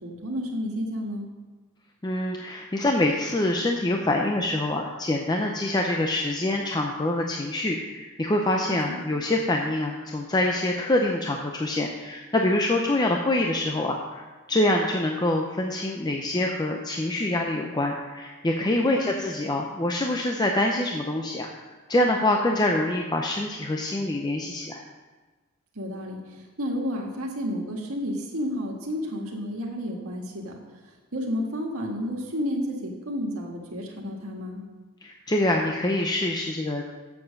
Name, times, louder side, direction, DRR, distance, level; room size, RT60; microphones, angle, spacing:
voice 1, 0.0-1.3 8.9-9.0 18.8-19.1 25.7-26.2 26.6-30.6 31.1-34.6, equal, 70° right, 0 dB, 1.7 m, -31 dB
voice 2, 2.0-21.5 21.9-24.8 35.0-36.9, left 1 dB, 20° left, 1 dB, 0.5 m, -25 dB
7.6 x 7.1 x 6.5 m, 1.3 s
head